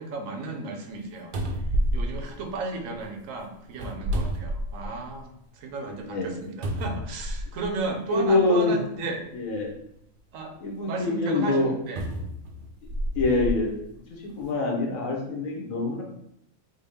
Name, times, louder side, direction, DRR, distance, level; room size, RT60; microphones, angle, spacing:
voice 1, 0.0-1.3 1.9-9.3 10.3-10.6 10.8-12.0, right 3 dB, 85° right, 4 dB, 1.0 m, -34 dB
sound 1, 0.9-1.0 1.3-3.0 3.7-5.1 5.6-5.7 6.6-7.7 8.7-8.8 11.9-13.6 14.3-14.4, right 1 dB, 60° right, 0.5 m, -29 dB
voice 2, 5.9-6.3 8.1-8.8 9.3-9.7 10.6-11.7 13.1-13.7 14.1-16.0, left 3 dB, 90° left, -1 dB, 1.3 m, -25 dB
3.6 x 2.2 x 3.4 m, 0.74 s
omnidirectional pair, 1.4 m